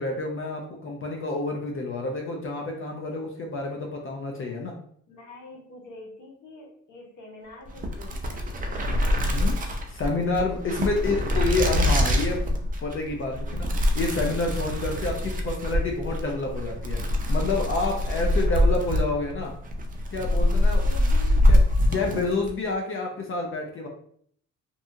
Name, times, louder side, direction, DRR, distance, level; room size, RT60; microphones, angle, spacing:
voice 1, 0.0-4.7 9.3-9.6 9.9-12.4 12.8-19.5 20.1-20.8 21.5-21.6 21.8-23.9, left 3 dB, 45° left, 1 dB, 0.5 m, -29 dB
voice 2, 5.1-8.9 20.8-21.4, left 2 dB, 80° left, -1 dB, 1.0 m, -45 dB
sound 1, 7.7-22.6, left 1 dB, 30° right, 0.5 m, -24 dB
2.7 x 2.4 x 2.5 m, 0.63 s
cardioid pair, 90°, 30 cm